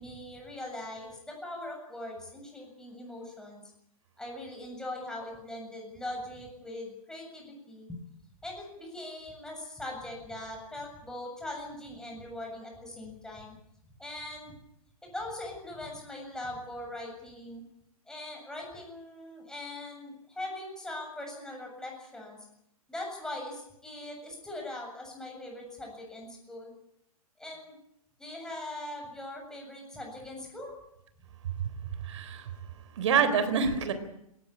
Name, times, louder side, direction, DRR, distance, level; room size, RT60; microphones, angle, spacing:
voice 1, 0.0-3.6 4.2-8.0 8.4-13.5 14.0-14.6 15.0-17.6 18.1-22.4 22.9-26.7 27.4-27.8 28.2-30.8, left 1 dB, 5° left, 0 dB, 7.5 m, -41 dB
voice 2, 32.0-32.5 33.0-33.9, right 6 dB, 50° right, 11 dB, 3.7 m, -26 dB
18.5 x 18.0 x 9.8 m, 0.80 s
figure-of-eight pair, 115°, 19 cm